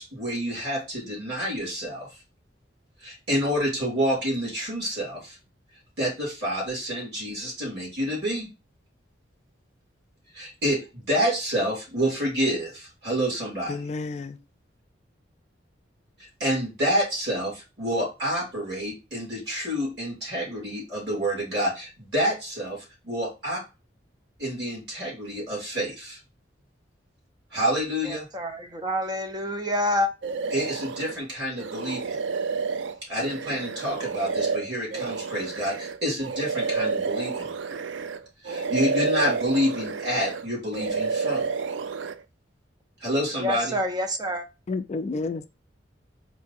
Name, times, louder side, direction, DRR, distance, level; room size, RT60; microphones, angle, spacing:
voice 1, 0.0-2.1 3.0-5.4 6.0-8.5 10.3-13.9 16.2-23.6 24.4-26.2 27.5-28.3 30.5-32.2 33.0-37.5 38.4-41.5 43.0-43.7, equal, 60° right, 2.9 m, -28 dB
voice 2, 13.7-14.4 44.7-45.5, left 3 dB, 35° left, 0.3 m, -30 dB
voice 3, 28.1-30.1 43.4-44.4, left 1 dB, 20° right, 0.5 m, -27 dB
sound 1, 30.2-31.2 31.6-38.2 38.4-40.4 40.7-42.1, right 5 dB, 80° right, 0.4 m, -30 dB
4.4 x 2.8 x 4.0 m
head